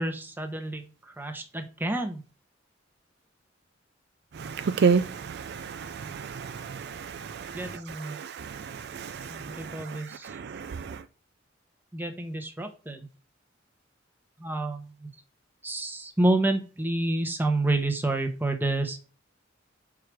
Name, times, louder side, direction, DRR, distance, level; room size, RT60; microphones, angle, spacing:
voice 1, 0.0-2.2 7.5-8.2 9.2-10.3 11.9-13.1 14.4-15.1 15.6-19.1, right 2 dB, 10° right, 1.0 m, -29 dB
voice 2, 4.4-7.4 8.2-8.6 8.9-9.7 10.3-11.0, right 5 dB, 55° right, 0.4 m, -30 dB
4.8 x 4.8 x 6.0 m
head